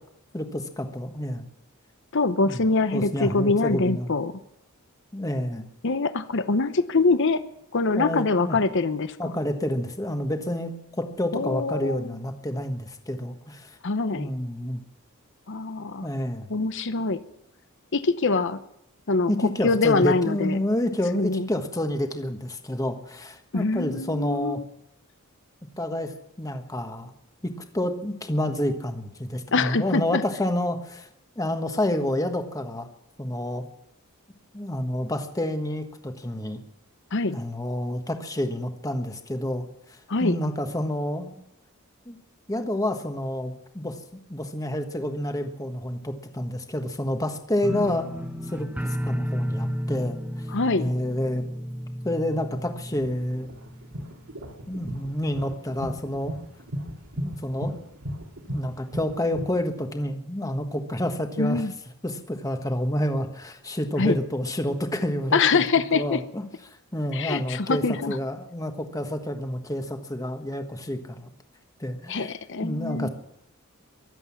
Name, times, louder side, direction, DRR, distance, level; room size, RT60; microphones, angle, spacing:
voice 1, 0.3-1.5 2.5-2.6 2.9-4.1 5.1-5.7 7.9-8.6 9.2-13.8 14.1-14.8 16.0-16.5 19.3-24.6 25.8-27.1 27.4-31.1 31.3-32.9 33.2-33.6 34.5-36.6 37.3-41.4 42.0-42.2 42.5-44.0 44.3-48.1 48.5-50.5 50.8-51.4 52.0-53.5 54.7-56.3 57.2-57.9 58.5-61.7 62.0-65.6 65.9-66.4 66.9-71.3 71.8-72.3 72.6-73.1, left 1 dB, 15° left, 6 dB, 1.4 m, -29 dB
voice 2, 2.1-4.3 5.8-7.4 7.7-9.3 11.3-12.1 13.8-14.3 15.5-16.1 16.5-17.2 17.9-18.6 19.1-20.6 21.1-21.5 23.5-24.6 29.5-30.2 37.1-37.4 40.1-40.4 47.7-47.9 50.5-50.9 61.4-61.7 64.0-64.2 65.3-66.2 67.1-68.2 72.1-73.1, left 3 dB, 55° left, 12 dB, 0.8 m, -24 dB
sound 1, 47.6-54.5 54.8-55.3 55.7-55.8, equal, 5° right, 0.9 m, -33 dB
sound 2, 52.9-59.5, equal, 70° right, 2.4 m, -35 dB
23.0 x 8.1 x 7.2 m, 0.80 s
head